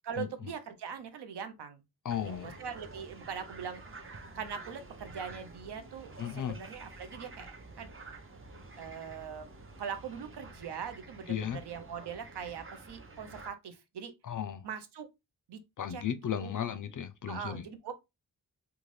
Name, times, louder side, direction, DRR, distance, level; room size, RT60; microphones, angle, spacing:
voice 1, 0.0-1.8 2.2-3.8 4.3-7.9 8.8-9.5 9.8-14.1 14.6-15.1 15.5-15.6 15.9-16.0 16.4-16.5 17.3-17.9, right 7 dB, 85° right, 0.6 m, -41 dB
voice 2, 2.0-2.6 6.2-6.6 11.3-11.6 14.2-14.6 15.8-17.6, left 9 dB, 55° left, 0.4 m, -35 dB
sound 1, 2.1-13.5, right 3 dB, 35° right, 0.7 m, -49 dB
2.5 x 2.3 x 3.2 m
cardioid pair, 50°, 39 cm